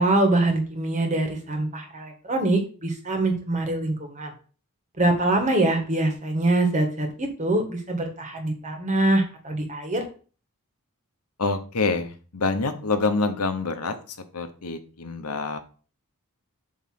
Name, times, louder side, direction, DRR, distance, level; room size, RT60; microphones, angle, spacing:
voice 1, 0.0-4.3 5.0-10.0, right 2 dB, 35° right, 3 dB, 1.6 m, -24 dB
voice 2, 11.4-15.6, left 3 dB, 80° left, 8 dB, 1.0 m, -27 dB
7.7 x 3.2 x 5.9 m, 0.38 s
head